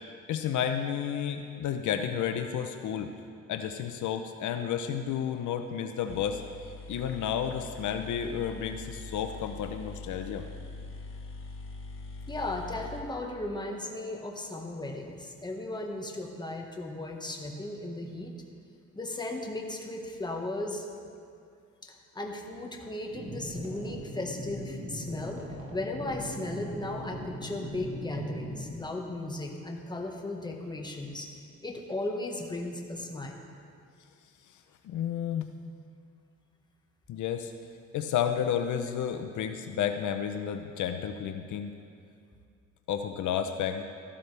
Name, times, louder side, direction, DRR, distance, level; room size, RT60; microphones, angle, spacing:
voice 1, 0.3-3.1 3.5-6.4 6.9-10.5 34.8-35.5 37.1-37.5 37.9-41.7 42.9-43.8, left 8 dB, 75° left, 7 dB, 0.7 m, -31 dB
sound 1, 5.8-5.9 6.1-13.9, left 3 dB, 45° left, 1.2 m, -43 dB
voice 2, 12.3-18.3 18.9-20.8 21.8-25.4 25.7-31.3 31.6-33.4, left 2 dB, 15° left, 1 dB, 1.4 m, -36 dB
sound 2, 23.1-28.6, right 1 dB, 45° right, 2.5 m, -40 dB
14.0 x 12.5 x 3.4 m, 2.4 s
cardioid pair, 90°, 30 cm